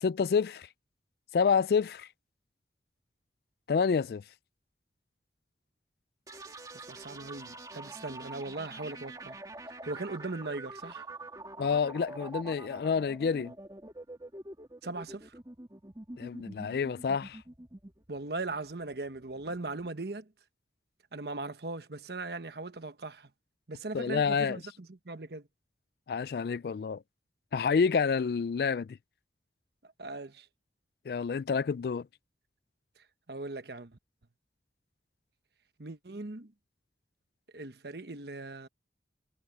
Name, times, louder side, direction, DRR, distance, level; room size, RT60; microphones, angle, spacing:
voice 1, 0.0-0.7 1.3-2.1 3.7-4.2 11.6-13.5 16.2-17.4 23.9-24.6 26.1-27.0 27.5-29.0 31.1-32.1, left 6 dB, 60° left, 0.3 m, -28 dB
sound 1, 6.3-19.9, right 2 dB, 20° right, 2.3 m, -46 dB
voice 2, 6.7-9.4 9.7-11.0 14.8-15.3 18.1-20.3 21.1-23.3 23.7-25.5 30.0-30.5 33.3-34.0 35.8-36.5 37.5-38.7, right 2 dB, 65° right, 1.1 m, -39 dB
head